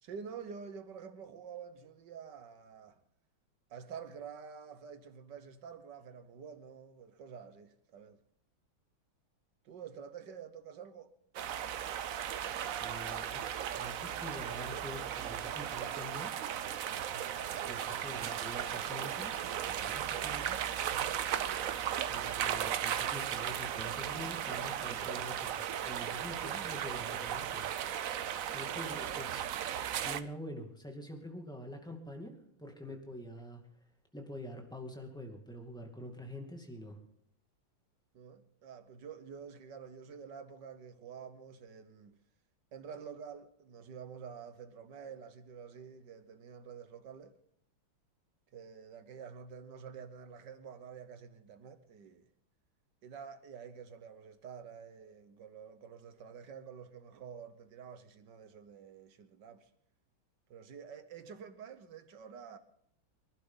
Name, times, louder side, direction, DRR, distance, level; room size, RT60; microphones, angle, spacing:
voice 1, 0.0-3.0 3.7-8.2 9.6-11.1 17.1-17.3 20.8-20.9 28.8-29.0 32.9-33.0 38.1-42.2 42.7-47.4 48.5-52.3 53.0-59.7 60.5-62.6, right 7 dB, 60° right, 1.5 m, -48 dB
sound 1, 11.3-30.2, right 10 dB, 80° right, 0.7 m, -36 dB
voice 2, 12.7-16.3 17.6-20.7 22.1-27.7 28.5-29.5 30.0-37.0, equal, ahead, 2.1 m, -46 dB
24.5 x 11.5 x 3.9 m
omnidirectional pair, 2.3 m